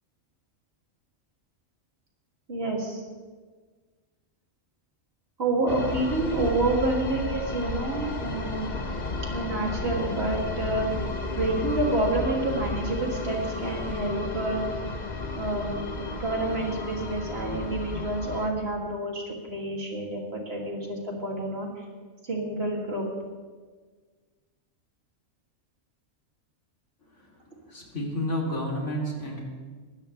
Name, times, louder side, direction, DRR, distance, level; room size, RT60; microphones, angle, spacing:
voice 1, 2.5-3.0 5.4-8.8 9.2-10.9 11.3-14.7 15.4-21.8 22.2-23.0, right 2 dB, 50° right, -2 dB, 3.0 m, -28 dB
sound 1, 5.7-18.5, left 3 dB, 35° left, 1.1 m, -33 dB
voice 2, 27.7-29.4, equal, 65° left, -2 dB, 3.9 m, -30 dB
22.0 x 16.0 x 3.4 m, 1.5 s
omnidirectional pair, 1.3 m